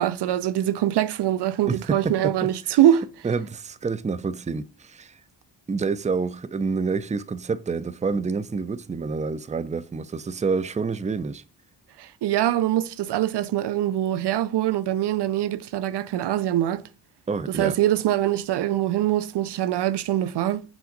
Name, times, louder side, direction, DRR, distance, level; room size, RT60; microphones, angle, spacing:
voice 1, 0.0-3.0 12.0-16.8 17.5-20.6, right 12 dB, 70° right, 0.5 m, -23 dB
voice 2, 1.7-2.3 2.7-2.8 3.2-5.2 5.7-11.4 17.3-17.8, right 4 dB, 15° right, 0.5 m, -28 dB
5.7 x 5.4 x 3.9 m
supercardioid pair, 40°, 43 cm